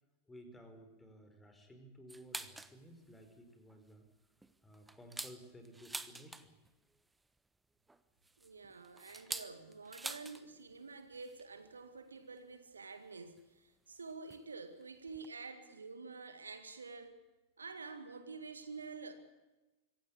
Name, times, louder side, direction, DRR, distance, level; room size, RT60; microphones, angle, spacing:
voice 1, 0.3-4.1 4.6-6.5, equal, 10° left, 4.7 m, -56 dB
sound 1, 2.1-2.8 3.2-3.3 3.7-3.9 4.4-6.7 7.9-10.5 10.7-10.8 11.1-11.4 12.4-12.5 13.4-13.5 14.3-14.5 14.8-14.9 15.1-15.3, right 2 dB, 10° right, 1.1 m, -46 dB
voice 2, 8.4-17.1 17.6-19.1, right 4 dB, 75° right, 2.1 m, -49 dB
25.0 x 16.5 x 8.5 m
figure-of-eight pair, 90°, 0 cm